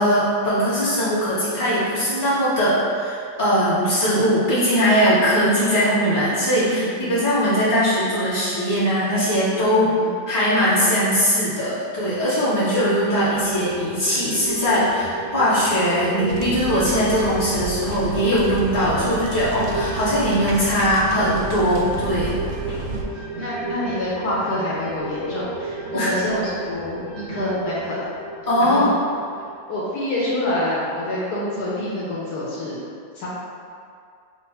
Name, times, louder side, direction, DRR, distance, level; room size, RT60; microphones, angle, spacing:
voice 1, 0.0-9.9 10.3-22.3 25.9-26.1 28.4-28.9, equal, 10° left, -12 dB, 1.2 m, -20 dB
voice 2, 6.6-7.2 9.8-10.1 12.7-13.1 22.9-28.0 28.6-28.9 29.4-32.8 33.1-33.3, left 1 dB, 65° left, -8 dB, 1.3 m, -27 dB
sound 1, 13.1-29.9 30.2-30.3, right 2 dB, 50° right, 0.9 m, -33 dB
sound 2, 16.3-23.0, right 2 dB, 70° right, 1.0 m, -32 dB
6.0 x 2.5 x 3.3 m, 2.3 s
omnidirectional pair, 1.8 m